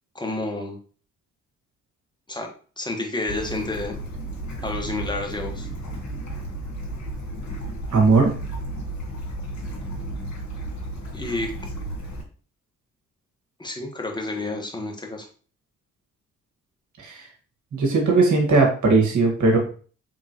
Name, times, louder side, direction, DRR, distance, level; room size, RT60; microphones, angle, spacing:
voice 1, 0.1-0.8 2.3-4.0 4.6-5.7 11.1-11.5 13.6-15.3, left 2 dB, 10° left, 1 dB, 1.3 m, -30 dB
Bird / Stream, 3.3-12.2, right 1 dB, 50° left, 1.8 m, -33 dB
voice 2, 7.9-8.3 17.0-17.2 17.7-19.6, right 3 dB, 55° right, 1 dB, 1.8 m, -18 dB
3.7 x 3.6 x 3.0 m, 0.40 s
hypercardioid pair, 50°, 35 cm